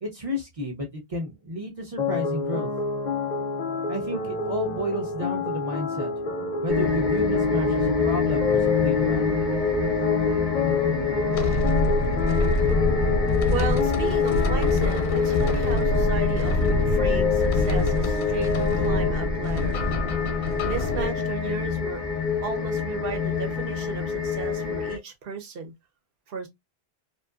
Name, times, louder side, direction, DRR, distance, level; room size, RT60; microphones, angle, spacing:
voice 1, 0.0-2.7 3.9-6.1 6.6-9.3, equal, 40° right, 0.7 m, -32 dB
sound 1, 2.0-19.1, left 3 dB, 55° left, 0.6 m, -29 dB
sound 2, 6.7-25.0, left 6 dB, ahead, 0.7 m, -26 dB
sound 3, 11.3-21.1, left 2 dB, 90° left, 0.9 m, -26 dB
voice 2, 13.5-19.8 20.6-22.0 22.4-25.7 26.3-26.5, right 6 dB, 65° right, 0.9 m, -34 dB
2.6 x 2.3 x 2.3 m
omnidirectional pair, 1.0 m